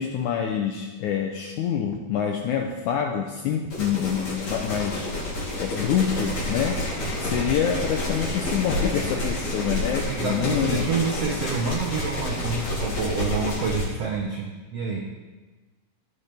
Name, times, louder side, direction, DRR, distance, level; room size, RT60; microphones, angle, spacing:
voice 1, 0.0-5.1 5.6-6.9 7.2-10.8, left 8 dB, 80° left, 3 dB, 1.8 m, -26 dB
sound 1, 3.7-13.9, left 1 dB, 50° left, 4.2 m, -29 dB
voice 2, 10.1-15.0, right 5 dB, 80° right, 0 dB, 1.4 m, -28 dB
16.0 x 9.0 x 3.4 m, 1.3 s
omnidirectional pair, 4.2 m